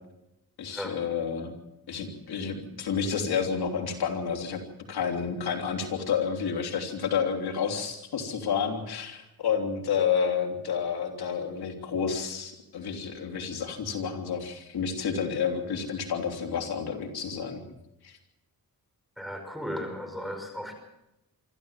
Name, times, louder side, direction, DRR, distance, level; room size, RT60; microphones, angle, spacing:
voice 1, 0.6-1.5 1.9-4.6 4.9-17.6 18.0-18.1, left 6 dB, 90° left, 4 dB, 3.3 m, -30 dB
voice 2, 19.2-20.7, equal, ahead, 5 dB, 5.3 m, -35 dB
25.0 x 14.5 x 7.4 m, 0.88 s
cardioid pair, 70°, 37 cm